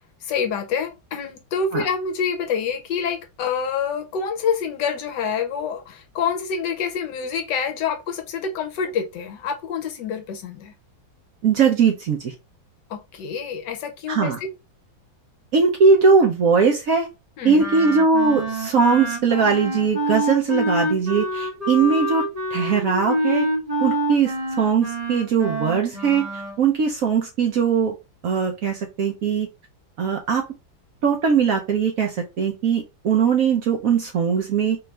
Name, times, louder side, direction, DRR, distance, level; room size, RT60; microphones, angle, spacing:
voice 1, 0.2-10.7 12.9-14.5 17.4-17.7, left 6 dB, 70° left, 1.2 m, -27 dB
voice 2, 11.4-12.3 14.1-14.4 15.5-17.1 17.4-22.2 22.5-23.5 23.8-28.0 28.2-29.5 30.0-30.4 31.0-34.8, right 5 dB, 65° right, 0.9 m, -20 dB
Wind instrument woodwind instrument, 17.6-26.6, right 1 dB, 40° right, 0.5 m, -26 dB
4.5 x 2.5 x 3.2 m
omnidirectional pair, 2.1 m